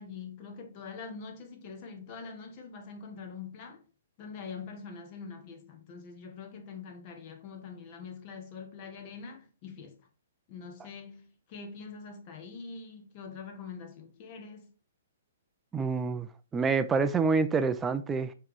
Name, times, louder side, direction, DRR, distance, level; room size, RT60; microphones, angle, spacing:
voice 1, 0.0-3.8 4.2-10.0 10.5-14.7, left 5 dB, 40° left, 1.2 m, -44 dB
voice 2, 15.7-18.3, right 4 dB, 15° right, 0.5 m, -27 dB
4.7 x 3.2 x 3.6 m
hypercardioid pair, 130°, 0 cm